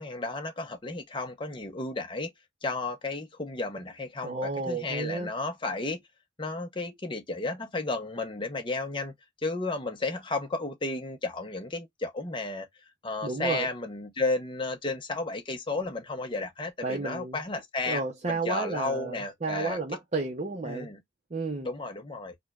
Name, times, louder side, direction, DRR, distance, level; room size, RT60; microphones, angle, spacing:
voice 1, 0.0-2.3 2.6-6.0 6.4-9.1 9.4-12.7 13.0-18.0 18.3-19.8 20.6-21.0 21.6-22.4, left 3 dB, 25° left, 0.7 m, -33 dB
voice 2, 4.2-5.3 13.2-13.7 16.8-17.4 17.9-20.9 21.3-21.7, right 3 dB, 35° right, 0.6 m, -32 dB
4.9 x 2.2 x 2.3 m
head